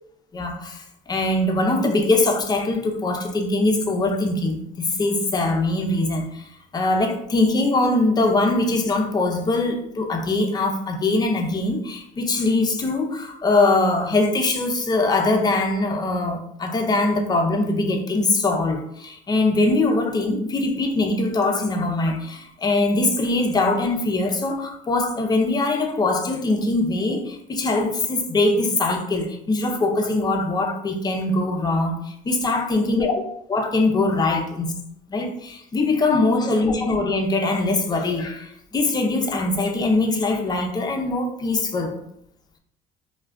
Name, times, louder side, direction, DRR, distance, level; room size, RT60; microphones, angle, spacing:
voice 1, 0.3-33.2 33.5-34.7 35.1-42.0, left 2 dB, 25° left, 3 dB, 0.5 m, -22 dB
2.2 x 2.2 x 3.4 m, 0.75 s
cardioid pair, 110°, 17 cm